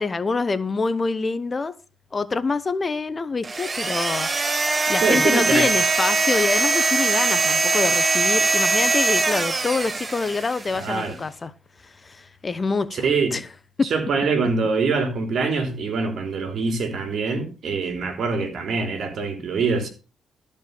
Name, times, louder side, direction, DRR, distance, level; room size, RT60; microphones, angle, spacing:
voice 1, 0.0-1.7 2.1-4.3 4.9-11.5 11.8-13.5 13.8-13.9, left 4 dB, 30° left, 0.8 m, -26 dB
sound 1, 3.4-10.8, right 3 dB, 25° right, 1.0 m, -22 dB
voice 2, 5.0-5.7 10.7-11.2 12.9-13.4 13.9-19.9, right 4 dB, 60° right, 3.4 m, -24 dB
13.5 x 5.3 x 6.7 m
cardioid pair, 90°, 0 cm